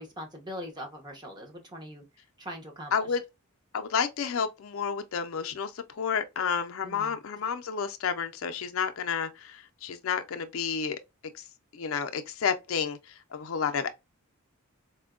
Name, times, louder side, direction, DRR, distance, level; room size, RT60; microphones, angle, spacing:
voice 1, 0.0-2.0 2.4-3.1 6.8-7.2, equal, 20° right, 0.9 m, -41 dB
voice 2, 2.9-3.2 3.7-11.0 11.3-11.4 11.7-13.9, left 6 dB, 70° left, 0.4 m, -31 dB
4.2 x 2.2 x 2.3 m
head